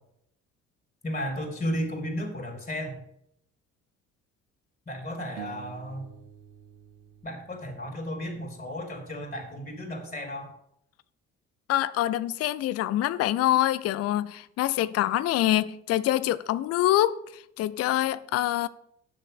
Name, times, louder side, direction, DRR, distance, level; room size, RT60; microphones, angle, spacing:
voice 1, 1.0-3.0 4.9-6.1 7.2-10.5, equal, 20° left, 3.2 m, -34 dB
sound 1, 5.4-8.6, right 8 dB, 55° right, 1.2 m, -48 dB
voice 2, 11.7-18.7, left 13 dB, 40° left, 0.5 m, -25 dB
9.3 x 6.5 x 7.0 m
figure-of-eight pair, 45°, 39 cm